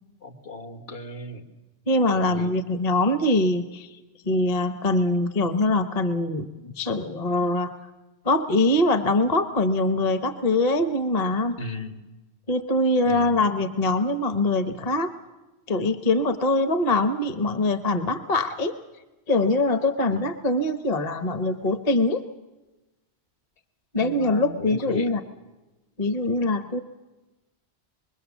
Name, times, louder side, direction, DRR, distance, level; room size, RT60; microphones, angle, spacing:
voice 1, 0.2-1.4 2.1-2.6 11.6-12.0 13.0-13.3 20.1-20.3 24.0-25.1, left 2 dB, 70° left, 6 dB, 1.7 m, -36 dB
voice 2, 1.9-3.9 4.2-7.7 8.2-11.6 12.5-15.1 15.7-18.7 19.3-22.2 23.9-25.2 26.0-26.8, left 2 dB, 40° left, 9 dB, 0.9 m, -23 dB
25.5 x 21.5 x 7.2 m, 1.1 s
omnidirectional pair, 1.1 m